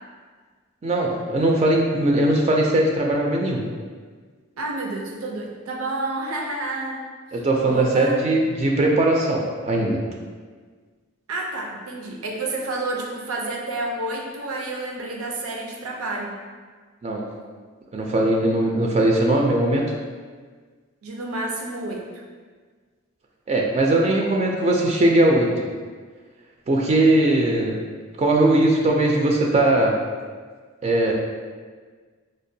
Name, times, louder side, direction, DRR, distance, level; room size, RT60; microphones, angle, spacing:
voice 1, 0.8-3.6 7.3-10.0 17.0-17.2 17.9-19.8 23.5-25.6 26.7-27.8 28.2-30.0 30.8-31.1, right 1 dB, 30° right, -1 dB, 0.3 m, -20 dB
voice 2, 4.6-7.0 7.7-8.2 11.3-16.3 21.0-22.0, right 2 dB, 85° right, 0 dB, 0.6 m, -29 dB
5.1 x 2.1 x 2.6 m, 1.5 s
head